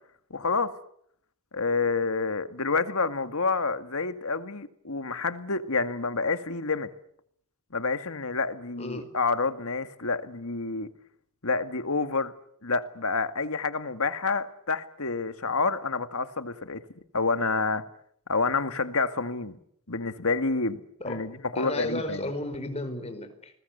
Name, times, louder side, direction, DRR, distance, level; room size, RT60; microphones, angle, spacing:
voice 1, 0.3-0.7 1.5-6.9 7.7-10.9 11.4-12.3 12.6-16.8 17.1-17.9 18.3-19.6 19.9-20.8 21.1-22.3, left 4 dB, 75° left, 2.0 m, -28 dB
voice 2, 8.8-9.1 21.0-21.2 21.5-23.5, left 1 dB, 30° left, 4.9 m, -33 dB
29.5 x 20.5 x 8.1 m
head